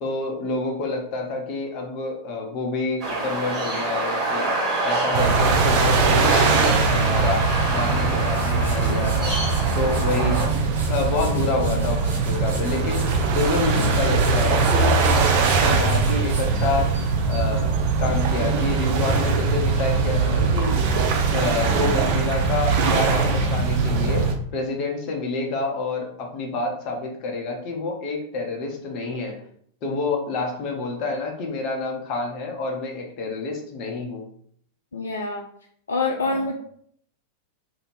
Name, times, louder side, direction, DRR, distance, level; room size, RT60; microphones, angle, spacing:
voice 1, 0.0-4.5 4.8-7.4 7.7-9.3 9.7-10.5 10.9-13.0 13.3-15.0 15.3-16.9 17.3-17.7 18.0-20.7 21.3-24.3 24.5-29.3 29.8-34.2 36.3-36.5, left 3 dB, 40° left, 1 dB, 0.7 m, -28 dB
sound 1, 3.0-10.5, right 2 dB, 20° right, 1.5 m, -26 dB
sound 2, 5.1-24.4, right 4 dB, 45° right, 0.4 m, -21 dB
sound 3, 8.0-17.4, right 1 dB, 65° right, 0.8 m, -35 dB
voice 2, 11.6-12.0 34.9-35.4 35.9-36.5, left 3 dB, 70° left, 0 dB, 0.3 m, -26 dB
2.6 x 2.1 x 3.2 m, 0.64 s
figure-of-eight pair, 90°, 0 cm